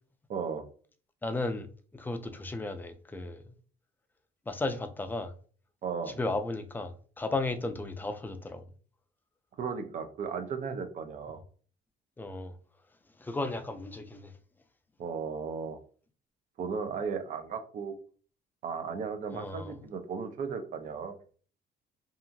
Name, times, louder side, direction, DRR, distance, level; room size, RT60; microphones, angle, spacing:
voice 1, 0.3-0.6 5.8-6.1 9.6-11.4 15.0-15.8 16.6-17.9 18.6-21.2, right 6 dB, 50° right, 0.6 m, -35 dB
voice 2, 1.2-1.7 1.9-3.4 4.5-5.3 6.2-8.7 12.2-12.5 13.2-14.3 19.3-19.7, left 2 dB, 10° left, 0.4 m, -34 dB
2.8 x 2.4 x 2.6 m
cardioid pair, 110°, 17 cm